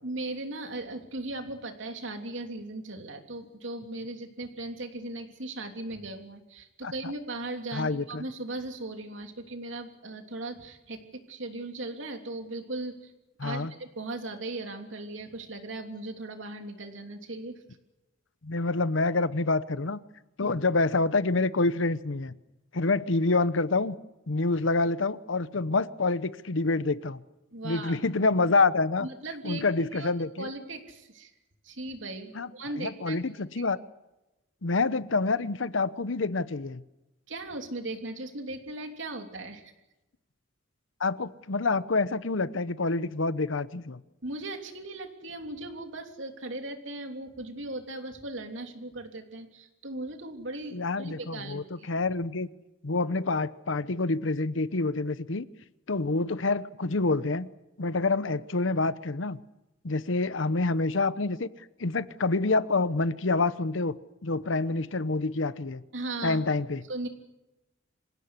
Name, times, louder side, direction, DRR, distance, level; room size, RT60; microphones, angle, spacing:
voice 1, 0.0-13.1 13.4-17.6 20.4-20.5 27.5-28.0 29.0-29.6 29.9-30.1 30.4-31.3 31.6-33.6 37.3-39.7 44.2-51.9 65.9-66.4 66.9-67.1, right 2 dB, 65° right, 5 dB, 3.2 m, -38 dB
voice 2, 7.7-8.2 13.4-13.7 18.4-20.0 20.4-22.3 22.7-23.9 24.3-27.2 27.6-29.1 29.4-30.5 32.3-32.5 32.8-33.8 34.6-36.8 41.0-44.0 50.7-52.5 52.8-55.4 55.9-57.5 57.8-59.4 59.8-61.5 61.8-64.0 64.2-65.8 66.2-66.8, left 3 dB, 70° left, 16 dB, 0.9 m, -27 dB
26.5 x 16.5 x 9.7 m, 0.99 s
head